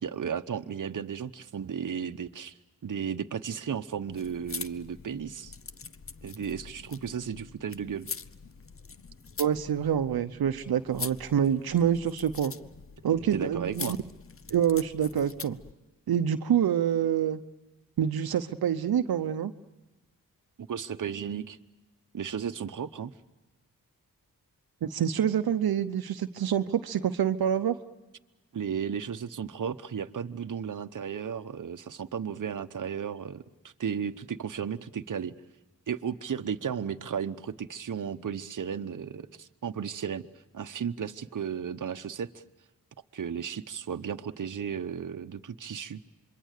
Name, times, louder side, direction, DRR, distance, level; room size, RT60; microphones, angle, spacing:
voice 1, 0.0-2.6 2.8-5.5 6.2-8.1 13.3-14.0 20.6-21.6 22.1-23.1 28.5-35.3 35.9-40.2 40.5-42.3 43.1-46.0, right 7 dB, 60° right, 9 dB, 1.0 m, -34 dB
sound 1, 4.1-15.7, left 5 dB, 40° left, 0.8 m, -43 dB
voice 2, 9.4-12.5 13.0-14.0 14.5-15.6 16.1-17.4 18.0-19.5 24.8-27.8, right 9 dB, 85° right, 8 dB, 0.8 m, -26 dB
27.0 x 23.0 x 6.6 m, 1.1 s
cardioid pair, 55°, 36 cm